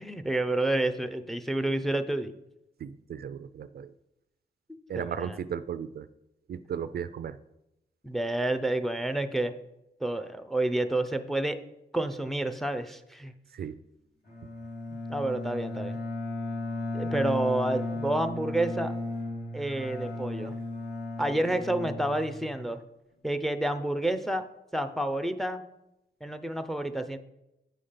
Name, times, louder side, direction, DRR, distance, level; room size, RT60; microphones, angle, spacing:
voice 1, 0.0-2.3 4.9-5.4 8.0-9.5 10.0-11.6 11.9-13.3 15.1-16.0 16.9-18.9 19.5-20.6 21.2-22.8 23.2-24.4 24.7-25.6 26.2-27.2, right 1 dB, ahead, 9 dB, 0.6 m, -29 dB
voice 2, 2.8-3.9 4.9-6.1 6.5-7.4 13.5-13.8, right 8 dB, 60° right, 14 dB, 0.4 m, -35 dB
Bowed string instrument, 14.3-22.7, left 2 dB, 60° left, 2.6 m, -35 dB
9.3 x 5.1 x 5.7 m, 0.88 s
wide cardioid pair, 115°, 18 cm